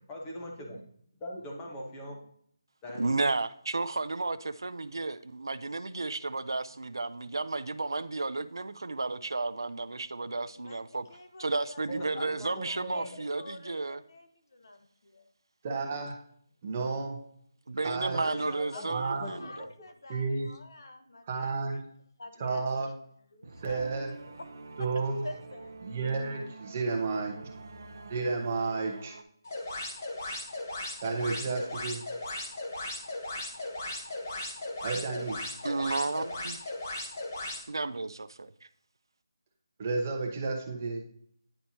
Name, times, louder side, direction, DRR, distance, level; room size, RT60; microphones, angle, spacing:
voice 1, 0.1-0.8 1.2-2.2 2.8-3.1 11.9-13.1 18.1-19.7, equal, 10° left, -1 dB, 1.0 m, -41 dB
voice 2, 3.0-11.1 11.4-14.0 17.7-19.5 35.6-36.6 37.7-38.5, right 3 dB, 85° right, 12 dB, 0.5 m, -32 dB
voice 3, 11.1-15.3 18.7-21.8 22.2-22.9 23.3-23.9 24.2-24.5 24.8-25.9, left 2 dB, 60° left, 6 dB, 1.1 m, -47 dB
voice 4, 15.6-16.1 16.6-17.2 17.8-18.2 18.9-19.3 20.1-20.5 21.3-21.8 22.4-22.9 23.6-24.1 24.8-25.3 25.8-27.3 28.0-29.2 31.0-32.0 34.8-35.4 39.8-41.0, right 4 dB, 20° right, 2 dB, 0.9 m, -31 dB
sound 1, 23.4-29.2, right 3 dB, 45° right, 0.8 m, -47 dB
sound 2, 29.4-37.6, left 2 dB, 40° left, 1.5 m, -37 dB
10.0 x 4.4 x 2.8 m, 0.64 s
figure-of-eight pair, 175°, 2 cm